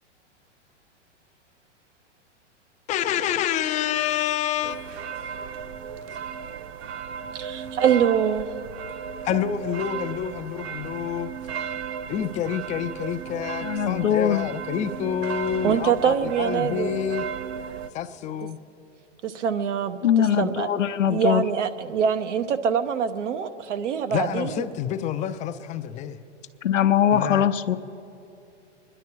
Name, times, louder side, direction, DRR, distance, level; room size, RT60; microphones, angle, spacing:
voice 1, 2.9-5.0 9.2-11.3 12.1-17.3 17.9-18.6 24.1-26.2 27.1-27.5, left 10 dB, 20° left, 10 dB, 0.5 m, -28 dB
sound 1, 4.6-17.9, right 7 dB, 60° right, 0.7 m, -35 dB
voice 2, 7.3-8.5 15.6-16.9 19.2-20.7 21.1-24.7, right 7 dB, 75° right, 10 dB, 1.0 m, -24 dB
voice 3, 13.6-14.5 20.0-21.4 26.6-27.8, left 9 dB, 90° left, 11 dB, 0.8 m, -21 dB
25.0 x 11.0 x 4.6 m, 2.7 s
hypercardioid pair, 120°, 37 cm